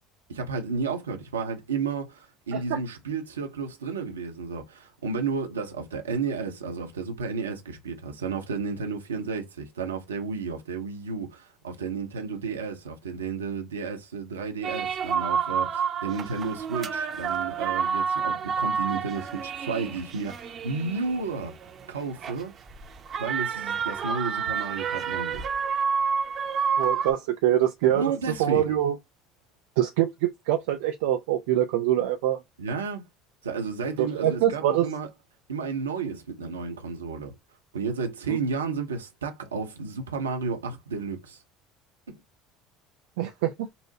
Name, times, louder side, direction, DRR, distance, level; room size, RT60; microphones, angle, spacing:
voice 1, 0.3-21.6 21.9-22.5 23.2-25.4 27.8-28.8 32.6-33.0 33.4-35.1 35.5-37.3 37.7-41.4 42.1-42.2, right 5 dB, 85° right, 0.8 m, -32 dB
sound 1, 14.6-27.1, right 6 dB, 40° right, 0.8 m, -29 dB
voice 2, 26.8-28.0 28.4-28.9 29.8-32.4 34.0-34.9 43.2-43.5, right 12 dB, 70° right, 0.4 m, -24 dB
5.4 x 2.1 x 2.8 m
figure-of-eight pair, 65°, 0 cm